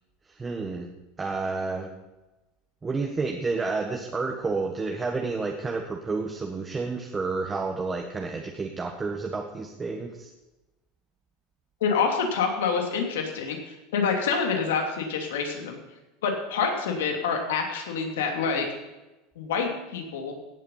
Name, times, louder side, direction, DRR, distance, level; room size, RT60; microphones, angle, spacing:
voice 1, 0.3-0.9 1.2-1.9 2.8-10.3, right 4 dB, 20° right, 2 dB, 1.4 m, -30 dB
voice 2, 11.8-15.8 16.2-18.7 19.4-20.3, left 5 dB, 85° left, 3 dB, 2.9 m, -27 dB
17.0 x 8.1 x 5.7 m, 1.1 s
supercardioid pair, 115°, 0 cm